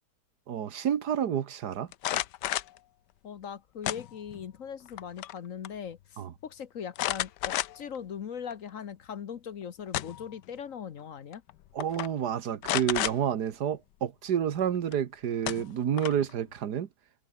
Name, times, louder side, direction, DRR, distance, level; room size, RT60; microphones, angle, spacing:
voice 1, 0.5-1.9 6.2-6.3 11.7-16.9, right 9 dB, 75° right, 1.7 m, -29 dB
sound 1, 1.9-2.8 3.8-4.5 4.9-5.4 5.6-5.7 7.0-8.0 8.5-8.6 9.6-10.3 11.3-11.5 11.8-12.1 12.6-13.2 14.9-15.0 15.5-16.3, left 14 dB, 90° left, 1.4 m, -31 dB
voice 2, 3.2-11.4, left 8 dB, 55° left, 1.3 m, -40 dB
omnidirectional pair, 1.8 m